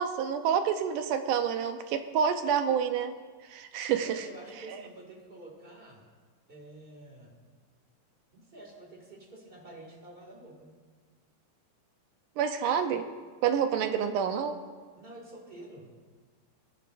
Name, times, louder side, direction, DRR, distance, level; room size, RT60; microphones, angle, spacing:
voice 1, 0.0-3.1 3.4-4.3 12.4-13.1 13.4-14.6, right 7 dB, 80° right, 7 dB, 2.1 m, -28 dB
voice 2, 4.0-6.0 6.5-7.3 8.3-10.7 14.9-16.0, right 1 dB, 20° right, -1 dB, 1.6 m, -48 dB
22.0 x 10.5 x 2.5 m, 1.5 s
omnidirectional pair, 4.0 m